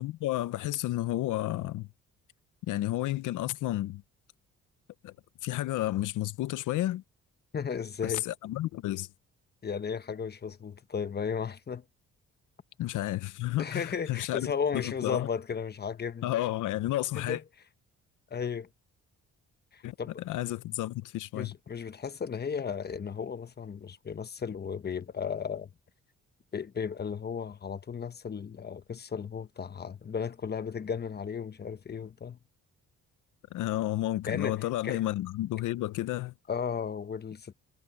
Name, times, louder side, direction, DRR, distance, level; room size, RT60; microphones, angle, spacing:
voice 1, 0.0-1.9 2.7-4.0 5.0-5.1 5.4-7.0 8.0-9.1 12.8-14.5 14.7-15.3 16.2-17.4 19.8-19.9 20.2-21.5 33.5-36.3, left 15 dB, 80° left, 0.8 m, -31 dB
voice 2, 7.5-8.2 9.6-11.8 13.6-16.3 17.1-17.4 18.3-18.7 19.7-20.2 21.3-25.7 26.5-32.4 34.3-34.6 34.8-35.0 36.5-37.5, left 6 dB, 35° left, 1.1 m, -35 dB
cardioid pair, 90°, 30 cm